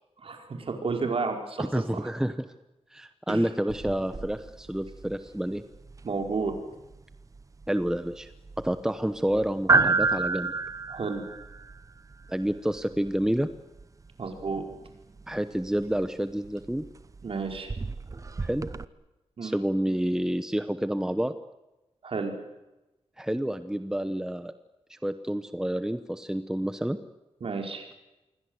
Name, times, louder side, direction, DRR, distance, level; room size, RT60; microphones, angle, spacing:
voice 1, 0.2-2.1 3.3-3.4 6.0-6.5 10.9-11.2 14.2-14.6 17.2-17.7 19.4-19.6 22.0-22.3 27.4-27.9, right 4 dB, 60° right, 3 dB, 4.9 m, -31 dB
voice 2, 1.6-2.5 2.9-5.6 7.7-8.3 8.6-10.5 12.3-13.5 15.3-16.8 18.4-18.7 19.4-21.3 23.2-24.5 24.9-27.0, right 1 dB, 5° right, 10 dB, 1.0 m, -29 dB
sound 1, 3.7-18.8, right 4 dB, 30° right, 0.9 m, -32 dB
27.5 x 23.0 x 8.0 m, 1.0 s
wide cardioid pair, 125°, 11 cm